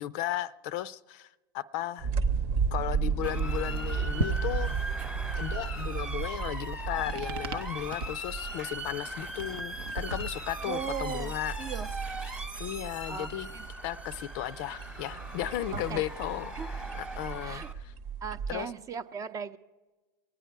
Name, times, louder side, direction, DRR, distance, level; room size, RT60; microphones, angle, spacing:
voice 1, 0.0-2.1 2.7-4.8 5.4-11.6 12.6-13.5 13.8-17.9 18.5-18.7, left 13 dB, 55° left, 16 dB, 0.5 m, -35 dB
sound 1, 2.0-18.5, right 6 dB, 55° right, 1.0 m, -35 dB
Motor vehicle (road) / Siren, 3.2-17.7, equal, 5° right, 1.1 m, -40 dB
sound 2, 4.1-11.3, right 3 dB, 80° right, 0.8 m, -38 dB
voice 2, 10.7-11.3 11.6-11.9 13.1-13.3 13.5-13.7 15.7-16.0 16.6-16.7 17.4-17.7 18.2-19.6, right 7 dB, 25° right, 11 dB, 0.6 m, -37 dB
22.5 x 9.2 x 4.6 m, 1.2 s
hypercardioid pair, 110°, 12 cm